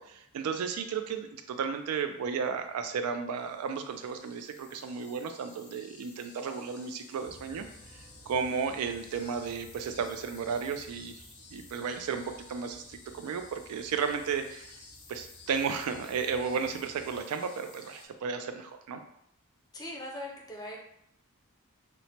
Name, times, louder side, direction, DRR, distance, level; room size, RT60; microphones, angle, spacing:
voice 1, 0.0-7.7 8.3-11.2 11.5-14.7 15.1-19.0, right 6 dB, 85° right, 7 dB, 0.3 m, -33 dB
sound 1, 3.3-18.1, left 4 dB, 85° left, 0.7 m, -54 dB
sound 2, 7.2-17.2, right 1 dB, 25° right, 0.7 m, -57 dB
voice 2, 19.7-20.8, left 1 dB, 15° left, -1 dB, 0.4 m, -40 dB
3.0 x 2.1 x 2.7 m, 0.75 s
head